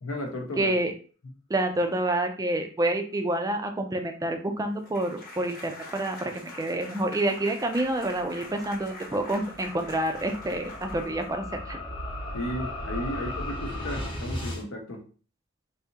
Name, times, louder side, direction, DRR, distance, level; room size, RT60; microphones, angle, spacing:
voice 1, 0.0-0.8 12.3-15.0, left 1 dB, 75° left, 2 dB, 0.8 m, -34 dB
voice 2, 0.6-0.9 1.5-11.8, right 1 dB, 15° right, 5 dB, 0.4 m, -28 dB
sound 1, 4.8-11.6, left 2 dB, 45° left, 1.0 m, -45 dB
sound 2, 6.8-14.6, left 1 dB, 25° left, 0.9 m, -37 dB
3.5 x 2.7 x 2.8 m, 0.39 s
head